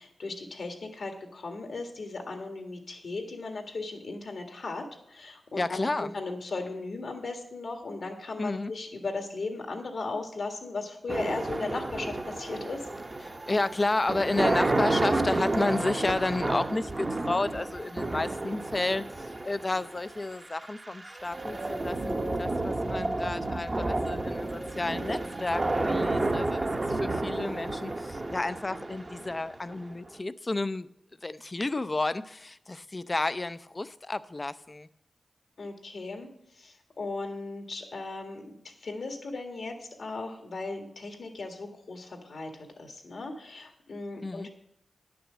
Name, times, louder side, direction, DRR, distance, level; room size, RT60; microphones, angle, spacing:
voice 1, 0.0-12.8 35.6-36.3 36.5-44.5, left 3 dB, 75° left, 3 dB, 1.9 m, -37 dB
voice 2, 5.6-6.1 8.4-8.7 13.2-30.9 31.2-34.9 44.2-44.5, left 2 dB, 35° left, 14 dB, 0.5 m, -31 dB
sound 1, 11.1-30.1, right 2 dB, 35° right, 0.9 m, -31 dB
11.0 x 6.0 x 7.4 m, 0.76 s
cardioid pair, 60°, 0 cm